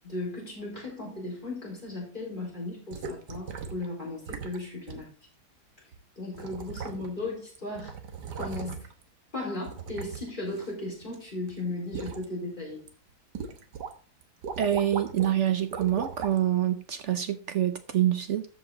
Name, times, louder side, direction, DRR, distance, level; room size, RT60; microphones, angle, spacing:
voice 1, 0.0-5.1 6.2-7.9 8.4-8.9 9.3-12.8, left 2 dB, 30° left, 4.5 m, -36 dB
sound 1, 2.9-3.9 4.3-4.6 4.9-5.0 5.9-6.0 6.3-7.3 7.6-9.0 9.6-11.2 11.5-12.3 12.7-12.9 13.4-13.9 14.2-15.3 15.7-16.4 17.1-17.2, right 6 dB, 85° right, 1.7 m, -38 dB
voice 2, 14.6-18.5, right 11 dB, 60° right, 0.8 m, -26 dB
13.5 x 5.1 x 3.9 m
omnidirectional pair, 1.8 m